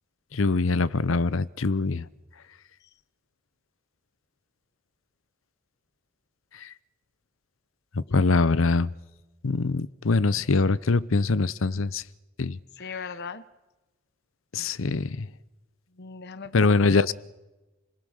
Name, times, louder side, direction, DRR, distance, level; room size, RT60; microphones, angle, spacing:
voice 1, 0.3-2.1 6.6-6.7 8.1-8.9 9.4-12.0 12.4-12.6 14.5-15.3 16.5-17.1, left 3 dB, 80° left, 0.8 m, -23 dB
voice 2, 12.8-13.4 16.0-16.8, left 5 dB, 55° left, 1.0 m, -39 dB
29.5 x 20.5 x 6.5 m
head